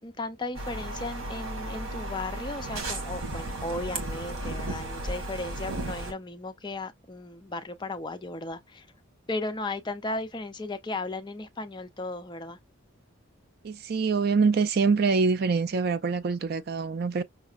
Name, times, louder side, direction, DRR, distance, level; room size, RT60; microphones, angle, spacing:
voice 1, 0.0-8.9 9.3-12.6, left 2 dB, 20° left, 0.5 m, -35 dB
sound 1, 0.5-6.1, right 1 dB, 85° right, 1.4 m, -34 dB
voice 2, 13.6-17.2, right 4 dB, 50° right, 0.4 m, -25 dB
5.7 x 2.0 x 2.4 m
head